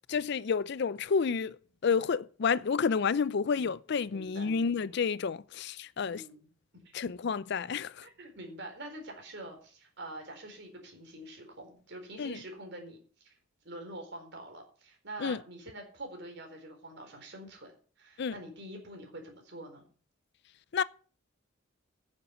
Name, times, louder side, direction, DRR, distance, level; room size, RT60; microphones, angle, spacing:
voice 1, 0.1-1.6 1.8-6.2 6.9-8.1 12.2-12.4 15.2-15.4 18.2-18.3 20.7-20.8, left 5 dB, 55° left, 0.4 m, -30 dB
voice 2, 4.1-4.5 6.1-6.5 6.8-6.9 8.0-13.0 13.2-13.4 13.6-17.7 18.0-19.9, right 1 dB, 55° right, 4.2 m, -45 dB
9.9 x 7.4 x 6.8 m
head